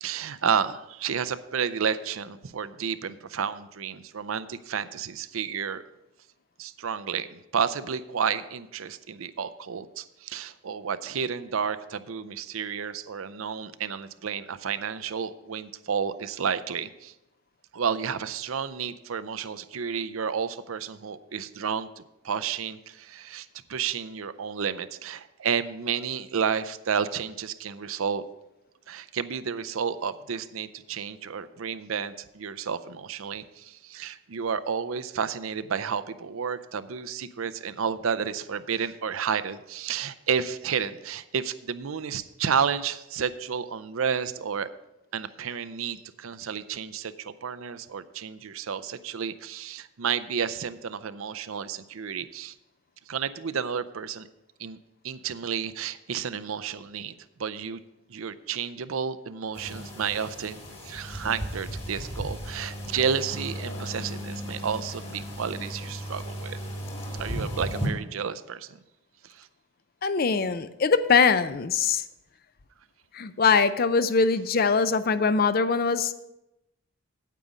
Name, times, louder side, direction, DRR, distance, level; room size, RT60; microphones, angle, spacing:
voice 1, 0.0-5.8 6.6-17.1 17.7-28.2 28.9-44.7 45.1-52.5 53.1-54.3 54.6-54.8 55.0-57.1 57.4-57.8 58.1-66.6 67.2-68.7 69.4-69.5, right 7 dB, 80° right, 14 dB, 0.5 m, -31 dB
sound 1, 59.5-67.9, equal, 30° left, 1.8 m, -35 dB
voice 2, 70.0-72.0 73.1-76.1, left 5 dB, 45° left, 13 dB, 0.5 m, -22 dB
9.2 x 8.4 x 5.0 m, 0.91 s
head